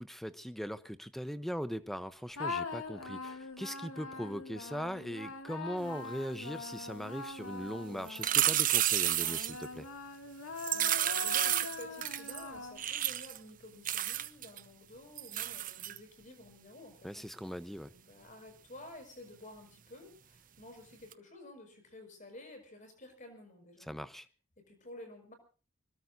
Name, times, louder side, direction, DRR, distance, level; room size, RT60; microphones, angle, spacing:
voice 1, 0.0-9.9 17.0-17.9 23.9-24.3, equal, ahead, 12 dB, 0.8 m, -40 dB
sound 1, 2.3-8.6 9.2-13.1, left 4 dB, 85° left, 2.4 m, -43 dB
sound 2, 8.1-9.7 10.6-12.4 12.8-13.4 13.9-14.6 15.2-16.0 21.1-21.2, right 12 dB, 40° right, 0.7 m, -31 dB
voice 2, 10.7-17.3 17.9-24.0 24.6-25.3, left 1 dB, 35° left, 6 dB, 5.6 m, -52 dB
25.0 x 21.5 x 2.7 m, 0.37 s
head